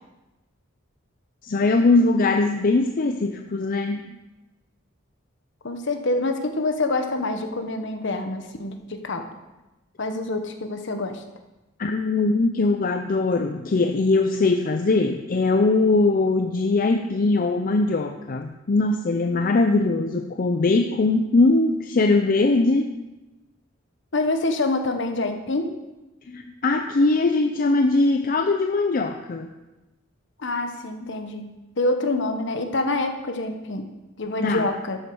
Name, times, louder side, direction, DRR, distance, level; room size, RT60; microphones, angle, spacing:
voice 1, 1.4-4.1 11.8-22.9 25.2-25.3 26.3-29.5 31.0-31.1 34.4-34.7, left 3 dB, 45° left, 5 dB, 0.5 m, -21 dB
voice 2, 5.6-9.3 10.0-11.2 24.1-25.7 30.4-33.8 34.2-35.0, left 2 dB, 65° left, 6 dB, 1.2 m, -26 dB
12.0 x 7.3 x 4.8 m, 1.1 s
head